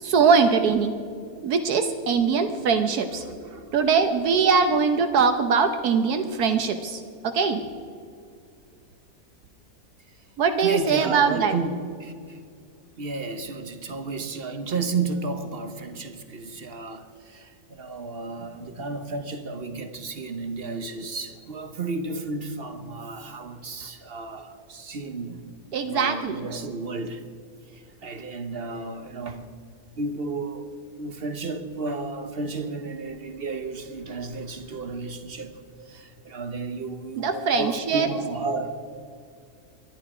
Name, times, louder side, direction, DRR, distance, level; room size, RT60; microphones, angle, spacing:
voice 1, 0.0-0.9 1.4-3.2 3.7-7.6 10.4-11.5 24.3-24.4 25.7-26.5 37.2-38.1, right 5 dB, 75° right, 1.3 m, -22 dB
voice 2, 3.2-3.8 10.6-12.4 13.0-25.4 25.8-27.2 27.7-29.5 30.0-30.7 31.0-35.6 35.9-38.8, right 3 dB, 45° right, 0.9 m, -32 dB
24.0 x 11.0 x 4.9 m
omnidirectional pair, 1.7 m